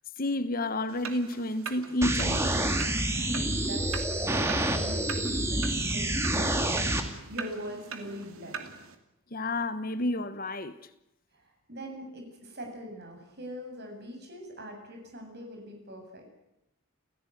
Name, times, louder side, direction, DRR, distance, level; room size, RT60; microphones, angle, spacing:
voice 1, 0.2-2.5 9.3-10.7, left 1 dB, 40° left, 1.2 m, -30 dB
sound 1, 0.9-8.9, right 6 dB, 80° right, 2.8 m, -42 dB
sound 2, 2.0-7.0, right 1 dB, 10° right, 2.4 m, -28 dB
voice 2, 3.1-8.7 11.3-16.3, equal, 50° right, 7.9 m, -42 dB
29.5 x 16.0 x 9.4 m
head